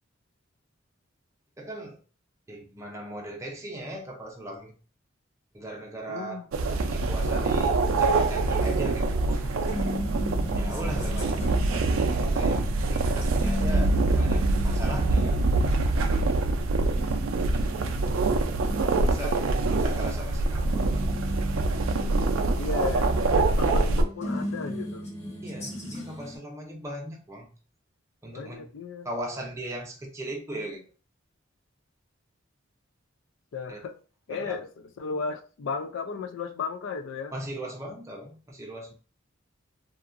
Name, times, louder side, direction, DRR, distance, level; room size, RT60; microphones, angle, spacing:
voice 1, 1.6-2.0 2.5-4.7 5.5-6.4 6.8-9.5 10.5-15.4 19.0-21.1 25.4-27.5 28.2-28.7 29.0-30.8 33.7-33.8 34.3-34.6 37.3-38.9, right 1 dB, 15° right, 0.5 m, -38 dB
voice 2, 6.1-6.5 10.9-11.0 22.6-25.1 28.3-29.1 33.5-33.9 34.3-37.3, left 5 dB, 70° left, 0.4 m, -35 dB
sound 1, 6.5-24.0, right 3 dB, 80° right, 0.4 m, -25 dB
sound 2, 8.8-26.4, left 1 dB, 35° left, 0.9 m, -38 dB
2.8 x 2.4 x 2.4 m
head